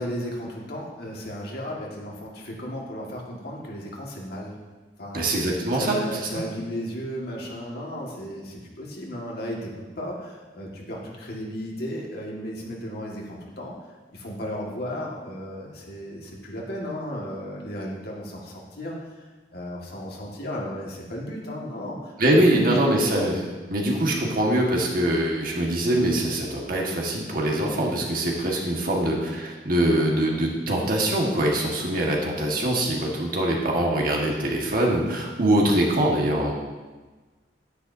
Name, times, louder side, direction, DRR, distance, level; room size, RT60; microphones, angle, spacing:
voice 1, 0.0-4.6 5.0-5.4 5.7-13.8 14.1-19.0 19.5-22.1 22.4-22.9, equal, 60° left, -2 dB, 1.9 m, -34 dB
voice 2, 5.1-6.2 22.2-36.5, right 1 dB, 55° right, -1 dB, 1.6 m, -23 dB
10.5 x 9.9 x 2.8 m, 1.3 s
head